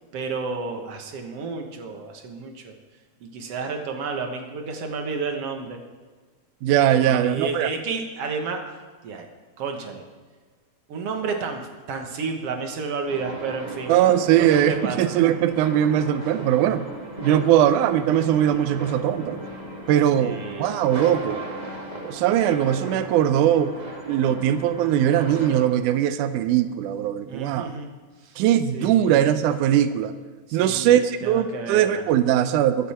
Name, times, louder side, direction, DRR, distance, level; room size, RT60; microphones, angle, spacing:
voice 1, 0.1-2.7 3.2-5.8 7.0-8.6 9.0-9.3 9.6-10.0 10.9-13.9 14.4-15.0 20.2-20.8 27.3-27.9 28.2-28.3 28.7-29.2 30.5-32.0, right 4 dB, 60° right, 3 dB, 1.9 m, -31 dB
voice 2, 6.6-7.7 13.9-16.8 17.2-19.4 19.9-21.4 22.0-23.7 24.1-27.7 28.4-30.1 30.5-32.9, right 11 dB, 80° right, 11 dB, 2.1 m, -20 dB
sound 1, 13.1-25.6, right 1 dB, 20° right, 1.2 m, -37 dB
23.0 x 8.0 x 4.3 m, 1.4 s
omnidirectional pair, 3.6 m